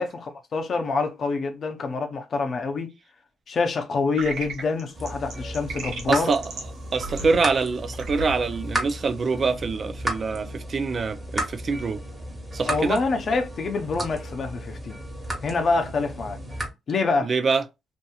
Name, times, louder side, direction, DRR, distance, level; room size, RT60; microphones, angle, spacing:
voice 1, 0.0-2.9 3.5-6.3 12.7-15.0 15.4-16.4 16.9-17.3, left 4 dB, 50° left, 0.6 m, -26 dB
sound 1, 4.2-9.5, right 2 dB, 80° right, 1.0 m, -37 dB
sound 2, 4.9-16.7, right 1 dB, 20° right, 1.3 m, -34 dB
voice 2, 6.1-6.4 6.9-12.0 12.5-13.0 17.2-17.6, right 4 dB, 45° right, 0.4 m, -25 dB
2.7 x 2.6 x 2.3 m
cardioid pair, 90°, 0 cm